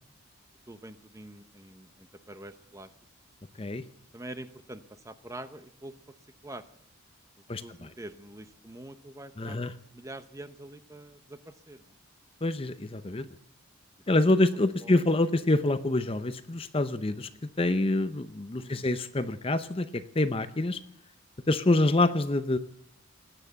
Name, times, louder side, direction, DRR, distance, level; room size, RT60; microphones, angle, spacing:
voice 1, 0.7-2.9 4.1-5.9 6.4-6.6 7.6-11.9 14.1-14.2 14.6-15.0 18.6-18.9, right 1 dB, 15° right, 11 dB, 0.8 m, -45 dB
voice 2, 7.5-7.9 9.4-9.7 12.4-13.2 14.1-17.3 17.6-20.8 21.5-22.6, left 2 dB, 25° left, 11 dB, 0.6 m, -26 dB
19.5 x 9.0 x 8.1 m, 0.75 s
head